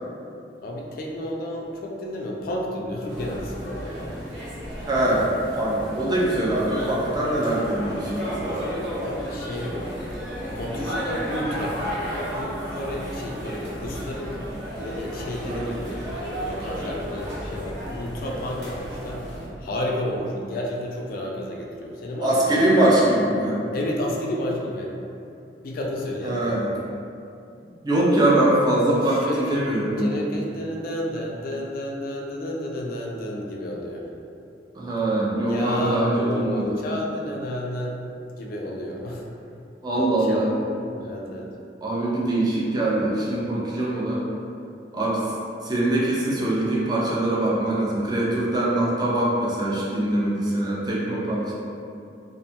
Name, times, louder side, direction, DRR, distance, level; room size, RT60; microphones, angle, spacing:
voice 1, 0.6-4.2 9.0-9.9 10.5-14.4 14.8-19.2 19.6-22.6 23.7-24.9 25.6-26.6 29.0-29.6 30.0-34.1 35.5-38.0 38.4-39.2 40.0-41.5, left 1 dB, 50° left, -1 dB, 0.3 m, -31 dB
sound 1, 3.1-19.5, equal, 70° right, 0.7 m, -33 dB
voice 2, 4.8-8.7 15.4-15.7 22.2-23.6 26.2-26.7 27.8-30.1 34.8-36.8 39.8-40.5 41.8-44.2 44.9-45.3 45.6-51.5, right 1 dB, 20° right, -6 dB, 0.4 m, -23 dB
2.6 x 2.2 x 2.7 m, 2.6 s
head